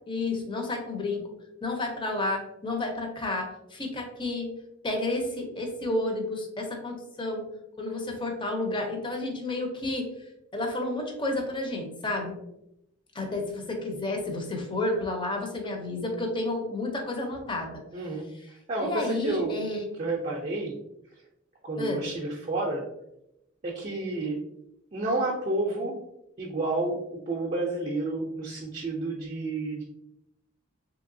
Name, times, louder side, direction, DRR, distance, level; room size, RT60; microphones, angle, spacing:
voice 1, 0.1-1.3 1.6-4.6 4.8-7.5 7.8-10.1 10.5-12.4 13.1-17.8 18.8-19.8 21.8-22.1, left 2 dB, 25° left, 2 dB, 0.6 m, -31 dB
voice 2, 17.9-18.2 18.7-19.5 20.0-20.8 21.6-22.9 23.6-24.4 24.9-26.0 26.4-27.0 27.3-29.8, right 2 dB, 35° right, -2 dB, 0.4 m, -30 dB
3.1 x 2.8 x 2.6 m, 0.84 s
head